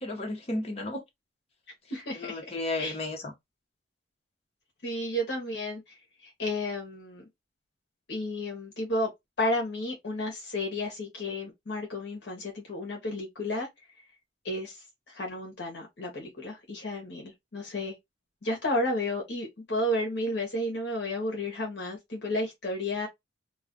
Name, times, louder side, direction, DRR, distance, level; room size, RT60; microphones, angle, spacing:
voice 1, 0.0-1.0 2.1-3.3, left 2 dB, 35° left, 0.8 m, -33 dB
voice 2, 1.9-3.0 4.8-5.8 6.2-7.2 8.1-9.1 9.4-13.7 14.4-17.9 18.4-23.1, left 1 dB, 70° left, 0.9 m, -32 dB
2.4 x 2.2 x 3.6 m
head